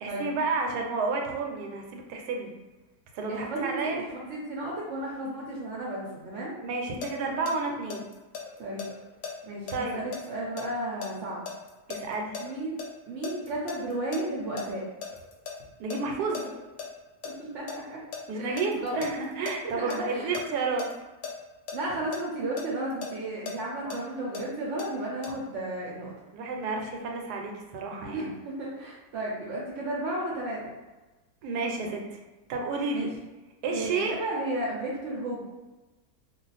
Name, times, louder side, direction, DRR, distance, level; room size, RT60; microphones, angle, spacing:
voice 1, 0.0-2.5 3.1-4.0 6.6-8.0 9.7-10.0 11.9-12.3 15.8-16.4 18.3-20.9 23.8-24.0 26.3-28.3 31.4-32.0 32.5-33.1 33.6-34.1, right 3 dB, 85° right, 1 dB, 1.1 m, -31 dB
voice 2, 3.3-6.6 8.6-8.9 9.4-11.5 12.4-14.8 17.2-18.0 18.3-19.0 19.6-20.3 21.7-26.1 28.0-30.7 32.9-33.1 33.7-35.4, right 1 dB, 65° right, -3 dB, 0.8 m, -34 dB
sound 1, 7.0-12.9 13.2-15.6 15.9-16.0 16.3-16.9 17.2-20.4 20.8-20.9 21.2-21.3 21.7-21.8 22.1-24.9 25.2-25.3, left 6 dB, 60° left, 0.8 m, -37 dB
2.4 x 2.3 x 3.9 m, 1.1 s
omnidirectional pair, 1.7 m